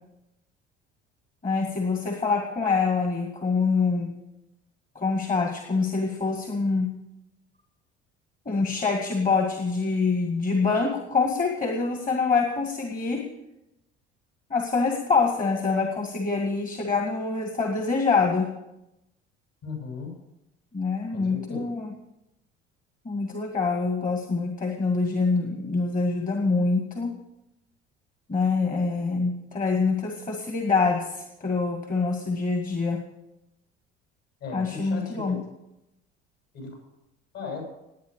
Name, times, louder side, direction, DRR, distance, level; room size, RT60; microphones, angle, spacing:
voice 1, 1.4-4.1 5.0-6.9 8.5-13.2 14.5-18.5 20.7-21.9 23.1-27.1 28.3-33.0 34.5-35.4, left 4 dB, 25° left, 3 dB, 2.1 m, -25 dB
voice 2, 19.6-20.1 21.1-21.6 34.4-35.4 36.5-36.7 37.3-37.6, left 4 dB, 50° left, 1 dB, 7.4 m, -36 dB
19.0 x 9.2 x 6.7 m, 0.89 s
figure-of-eight pair, 55°, 35 cm